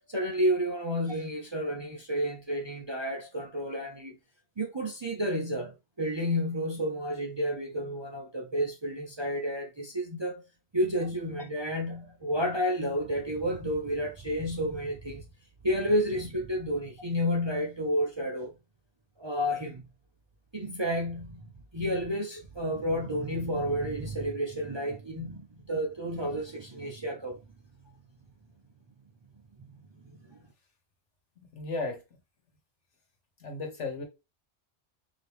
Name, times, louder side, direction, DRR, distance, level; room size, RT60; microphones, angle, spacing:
voice 1, 0.1-4.2 4.6-10.4 10.7-15.3 15.6-18.5 19.2-19.9 20.5-21.5 21.7-27.4 29.6-29.7 30.3-30.4, equal, 30° right, 0.5 m, -31 dB
voice 2, 31.5-32.0 33.4-34.0, left 3 dB, 80° left, 1.5 m, -34 dB
3.8 x 2.9 x 3.3 m
omnidirectional pair, 1.2 m